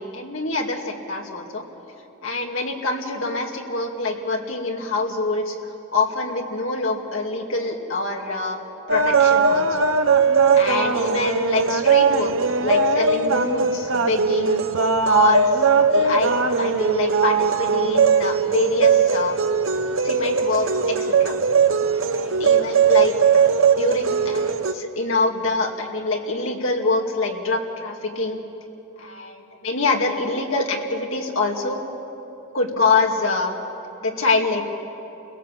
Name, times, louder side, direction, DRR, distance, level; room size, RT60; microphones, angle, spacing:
voice 1, 0.0-1.6 2.2-5.6 5.9-8.6 8.9-9.8 10.5-14.6 15.0-16.3 16.6-19.4 20.0-21.3 21.9-23.2 23.8-28.4 29.0-31.8 32.5-33.6 34.0-34.6, left 3 dB, 75° left, 1 dB, 2.4 m, -25 dB
sound 1, 8.9-24.7, right 5 dB, 80° right, 0.9 m, -19 dB
29.0 x 17.0 x 7.6 m, 3.0 s
head